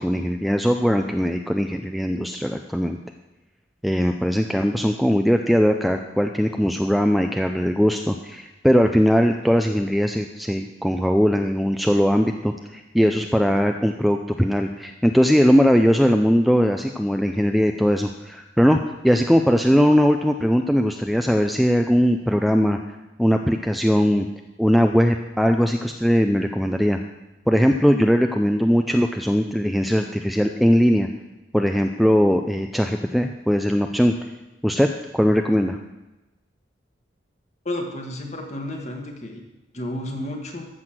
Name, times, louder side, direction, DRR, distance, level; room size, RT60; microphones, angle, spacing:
voice 1, 0.0-3.0 3.8-22.8 23.2-24.3 24.6-27.0 27.5-31.1 31.5-34.1 34.6-34.9 35.1-35.8, equal, ahead, 5 dB, 0.4 m, -20 dB
voice 2, 37.7-39.4 39.7-40.7, left 1 dB, 35° left, 2 dB, 1.9 m, -31 dB
13.5 x 6.2 x 7.7 m, 1.0 s
head